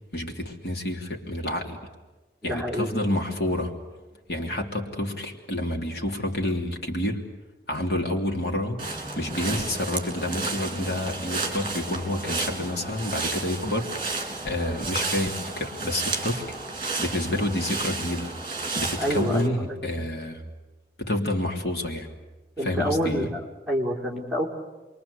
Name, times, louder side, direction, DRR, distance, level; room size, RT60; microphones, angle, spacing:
voice 1, 0.1-1.8 2.4-3.8 4.3-7.2 7.7-8.8 9.2-13.9 14.4-16.6 17.0-18.3 18.7-20.4 21.0-22.1 22.6-23.3, left 1 dB, 70° left, 2 dB, 3.2 m, -28 dB
voice 2, 2.4-3.0 19.0-19.9 22.6-24.4, equal, ahead, -4 dB, 3.8 m, -28 dB
sound 1, 8.8-19.5, right 3 dB, 30° right, 3.6 m, -32 dB
29.5 x 23.0 x 8.3 m, 1.2 s
head